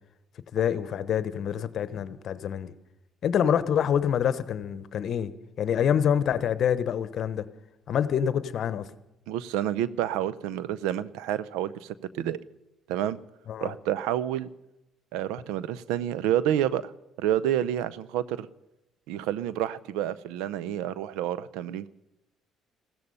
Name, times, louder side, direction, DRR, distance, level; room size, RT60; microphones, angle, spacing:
voice 1, 0.5-2.7 3.2-5.3 5.6-7.5 7.9-8.9 13.5-13.7, left 8 dB, 60° left, 1.0 m, -26 dB
voice 2, 9.3-12.4 12.9-13.2 13.6-14.5 15.1-16.9 17.2-18.5 19.1-21.9, right 11 dB, 90° right, 0.6 m, -29 dB
15.5 x 14.0 x 5.5 m
supercardioid pair, 85°, 0 cm